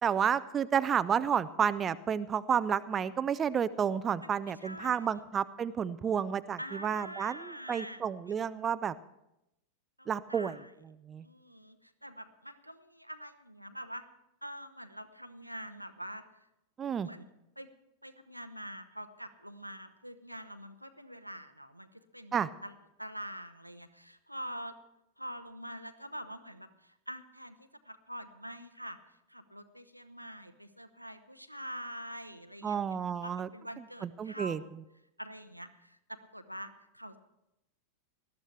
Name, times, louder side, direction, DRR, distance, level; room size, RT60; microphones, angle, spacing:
voice 1, 0.0-8.9 10.1-10.6 11.1-11.2 16.8-17.1 22.3-22.5 32.6-33.5 34.0-34.6, right 7 dB, 25° right, 14 dB, 0.4 m, -31 dB
voice 2, 4.2-5.1 6.6-8.0 10.0-10.7 11.2-14.1 14.4-16.2 17.0-17.3 17.6-17.7 18.0-22.7 23.0-24.7 25.2-29.0 29.3-34.7 35.2-37.2, equal, 90° right, 10 dB, 0.7 m, -45 dB
19.0 x 12.5 x 3.3 m, 0.89 s
figure-of-eight pair, 90°, 0 cm